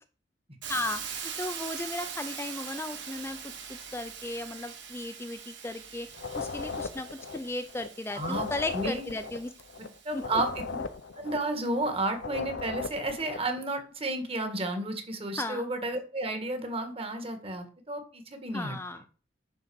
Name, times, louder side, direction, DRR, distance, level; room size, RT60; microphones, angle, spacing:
voice 1, 0.6-3.5 3.9-6.1 6.4-7.1 7.3-9.5 10.1-10.2 15.4-15.7 18.5-19.0, left 2 dB, 15° left, 8 dB, 0.5 m, -35 dB
Hiss, 0.6-10.5, right 7 dB, 70° right, 2.4 m, -42 dB
sound 1, 6.1-7.9 8.1-11.9 12.1-13.5, left 4 dB, 85° left, 0.7 m, -37 dB
voice 2, 8.1-8.5 8.7-9.1 10.0-10.6 11.2-18.8, right 2 dB, 30° right, 6 dB, 1.7 m, -32 dB
9.8 x 4.0 x 7.0 m, 0.38 s
head